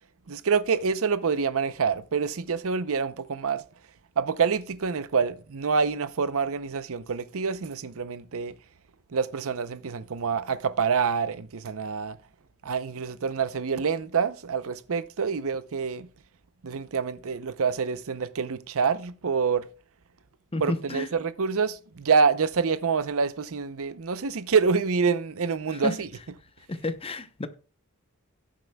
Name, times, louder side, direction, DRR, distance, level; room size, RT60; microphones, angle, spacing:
voice 1, 0.3-3.6 4.2-8.6 9.1-12.2 12.6-16.1 16.6-19.7 20.6-26.1, right 5 dB, 65° right, 0.7 m, -26 dB
voice 2, 20.5-21.1 25.7-26.0 26.7-27.5, left 2 dB, 25° left, 0.8 m, -31 dB
17.0 x 7.5 x 2.3 m
head